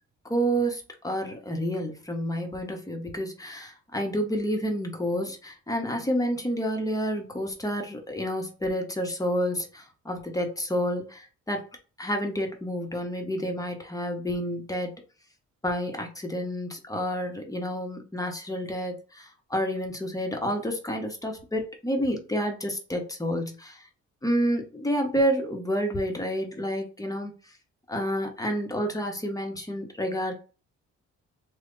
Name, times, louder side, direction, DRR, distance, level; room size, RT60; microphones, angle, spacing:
voice 1, 0.2-11.7 12.0-14.9 15.6-23.9 24.2-27.3 27.9-30.3, equal, 10° left, 2 dB, 0.9 m, -29 dB
3.2 x 2.2 x 3.8 m, 0.35 s
cardioid pair, 90°, 30 cm